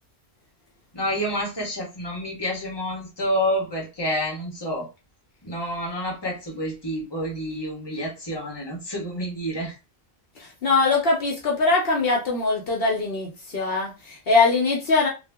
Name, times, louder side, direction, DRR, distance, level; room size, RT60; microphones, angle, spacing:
voice 1, 0.9-4.9 5.4-9.7, equal, 25° left, 1.1 m, -28 dB
voice 2, 10.4-15.1, left 3 dB, 65° left, 1.0 m, -22 dB
2.8 x 2.4 x 3.4 m
omnidirectional pair, 1.1 m